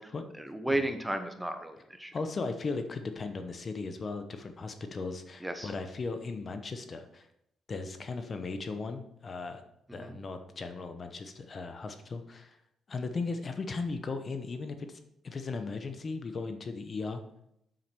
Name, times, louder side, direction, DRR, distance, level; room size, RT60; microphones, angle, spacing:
voice 1, 0.4-2.1 5.4-5.7 10.0-10.2, right 1 dB, 5° right, 7 dB, 1.0 m, -33 dB
voice 2, 2.1-7.3 7.7-9.6 9.9-12.6 12.9-17.2, left 4 dB, 40° left, 7 dB, 0.9 m, -37 dB
7.6 x 7.0 x 4.5 m, 0.77 s
cardioid pair, 90°, 0 cm